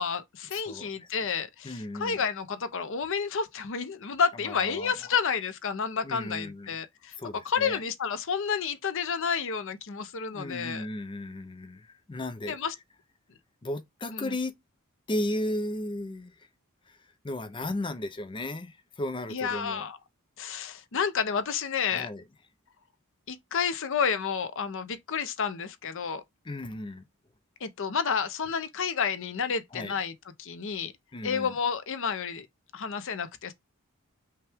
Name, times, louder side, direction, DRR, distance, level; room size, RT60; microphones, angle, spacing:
voice 1, 0.0-7.1 7.4-10.9 12.5-12.7 14.1-14.3 19.3-20.0 20.4-22.1 23.3-26.2 27.6-30.1 30.4-30.9 31.2-32.5 32.7-33.5, left 6 dB, 65° left, 0.7 m, -30 dB
voice 2, 0.5-1.1 1.6-2.2 4.5-4.9 6.0-6.8 7.2-7.8 10.3-12.6 13.6-14.5 15.1-16.5 16.9-17.0 17.2-19.9 21.9-22.2 26.4-27.0 29.7-29.9 31.1-31.5, left 1 dB, 25° left, 0.5 m, -35 dB
5.6 x 2.3 x 3.4 m
head